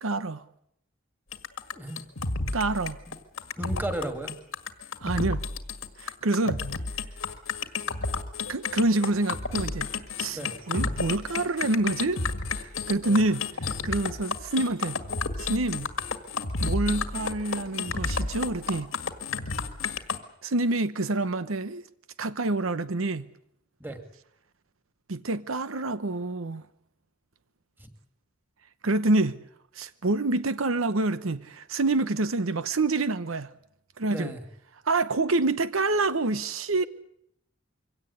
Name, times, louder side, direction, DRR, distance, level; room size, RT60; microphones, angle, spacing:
voice 1, 0.0-0.4 2.5-3.0 5.0-5.4 6.0-6.6 8.5-9.9 10.2-10.4 10.7-12.2 12.5-15.0 15.4-15.9 16.6-18.9 20.4-21.8 22.2-23.3 25.1-26.7 28.8-29.4 29.7-33.5 34.0-34.3 34.8-36.8, right 2 dB, 85° right, 1.0 m, -27 dB
sound 1, 1.3-20.2, left 4 dB, 85° left, 1.9 m, -31 dB
voice 2, 3.6-4.3 10.3-10.5 13.0-13.2 23.8-24.0 27.8-27.9 34.1-34.4, right 1 dB, 10° right, 2.5 m, -34 dB
24.0 x 17.0 x 9.7 m
head